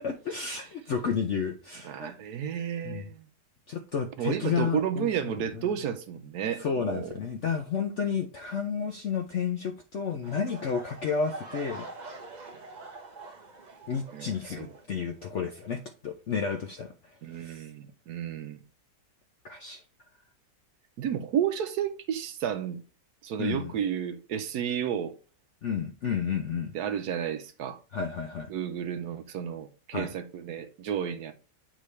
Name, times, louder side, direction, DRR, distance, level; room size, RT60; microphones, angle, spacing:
voice 1, 0.0-2.2 2.8-3.1 3.7-5.3 6.6-11.9 12.4-12.5 13.9-16.9 17.4-17.6 19.4-19.8 23.4-23.7 25.6-26.7 27.9-28.5 29.9-30.1, left 6 dB, 70° left, 0.7 m, -31 dB
voice 2, 1.8-3.2 4.2-7.2 14.1-14.7 17.2-18.6 21.0-22.8 23.2-25.1 26.7-27.8 28.5-31.3, right 9 dB, 70° right, 1.1 m, -32 dB
sound 1, 10.2-15.2 15.5-15.9 16.4-16.5, right 3 dB, 50° right, 0.5 m, -45 dB
8.2 x 3.7 x 3.2 m
omnidirectional pair, 1.9 m